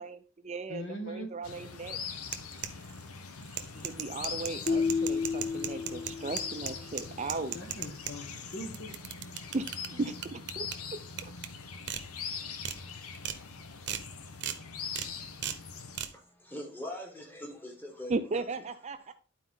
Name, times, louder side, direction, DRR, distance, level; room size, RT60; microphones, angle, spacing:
voice 1, 0.0-2.0 3.8-7.6 9.5-11.3 18.1-19.1, right 3 dB, 30° right, 0.5 m, -37 dB
voice 2, 0.7-1.3 3.7-3.9 7.5-8.9, equal, 60° left, 1.5 m, -41 dB
sound 1, 1.4-16.0, left 5 dB, 85° left, 0.9 m, -42 dB
sound 2, 2.2-3.0 3.4-8.1 8.5-9.9 10.2-10.7 11.2-11.5 11.9-12.0 12.4-12.8 13.1-13.4 13.9-14.0 14.4-14.6 14.9-15.1 15.4-15.6 15.9-16.1, right 9 dB, 50° right, 0.8 m, -36 dB
sound 3, 4.7-6.8, left 5 dB, 30° left, 0.5 m, -31 dB
voice 3, 16.1-18.2, left 1 dB, 10° left, 1.6 m, -42 dB
11.5 x 4.5 x 3.8 m
head